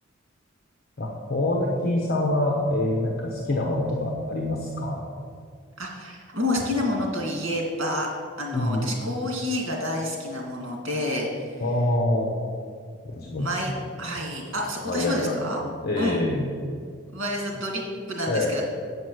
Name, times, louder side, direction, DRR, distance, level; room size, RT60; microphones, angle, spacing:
voice 1, 1.0-5.0 8.5-8.9 11.6-12.3 13.0-13.5 14.0-14.1 14.9-15.4 15.8-16.5 18.3-18.5, left 1 dB, 50° left, -1 dB, 1.0 m, -25 dB
voice 2, 5.8-8.1 8.4-11.5 13.4-13.7 14.0-15.6 16.0-16.2 17.1-18.6, left 1 dB, 70° right, 0 dB, 2.5 m, -29 dB
8.2 x 5.3 x 7.7 m, 2.2 s
head